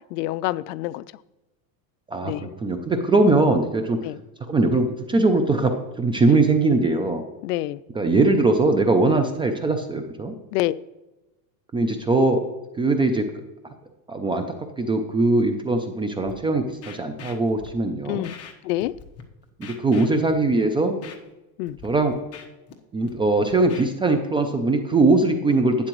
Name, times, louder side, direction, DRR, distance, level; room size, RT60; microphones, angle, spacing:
voice 1, 0.1-1.0 2.2-2.5 4.0-4.2 7.4-7.8 10.5-10.8 18.1-18.4 18.6-18.9 21.6-21.8, left 16 dB, 70° left, 0.5 m, -27 dB
voice 2, 2.6-4.0 4.5-7.2 7.9-10.3 11.7-12.4 12.8-13.3 14.1-14.4 14.8-18.3 19.6-21.0 21.8-22.2 22.9-25.9, right 2 dB, 10° right, 0.3 m, -21 dB
Scratching (performance technique), 16.2-16.3 16.8-17.7 18.2-18.5 18.8-19.2 19.6-20.5 21.0-21.2 21.7-21.9 22.1-22.7 23.1-23.8, left 6 dB, 30° left, 1.2 m, -42 dB
11.5 x 9.6 x 3.0 m
supercardioid pair, 130°, 48 cm